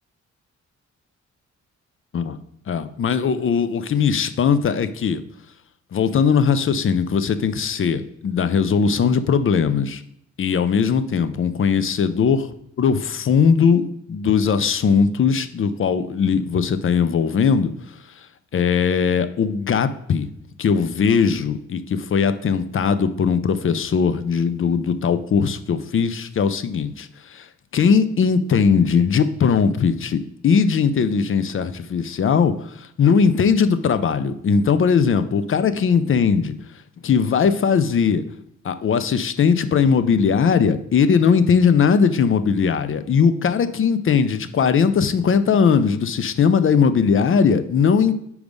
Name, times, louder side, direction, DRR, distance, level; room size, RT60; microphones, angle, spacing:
voice 1, 2.7-5.2 5.9-10.0 10.4-17.7 18.5-20.3 20.6-27.4 27.7-36.5 37.0-38.2 38.6-48.1, left 6 dB, 45° left, 12 dB, 0.6 m, -19 dB
5.2 x 4.8 x 5.2 m, 0.75 s
cardioid pair, 100°, 30 cm